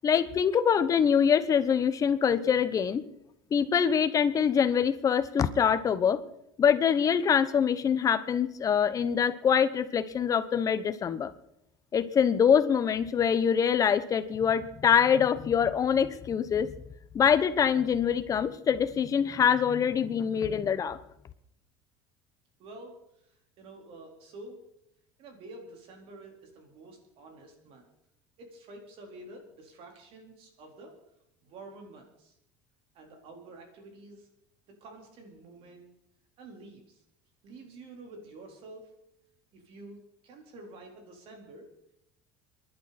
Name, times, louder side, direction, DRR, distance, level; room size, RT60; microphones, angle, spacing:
voice 1, 0.0-3.0 3.5-6.2 6.6-11.3 11.9-16.7 17.1-21.0, left 7 dB, 30° left, 12 dB, 1.0 m, -24 dB
voice 2, 22.6-23.0 23.6-24.6 25.2-27.9 28.4-30.9 31.4-32.4 32.9-34.3 34.8-35.9 36.4-37.0 37.4-38.9 39.5-41.7, right 2 dB, 55° right, 2 dB, 4.2 m, -48 dB
29.0 x 11.5 x 4.3 m, 0.80 s
cardioid pair, 130°, 12 cm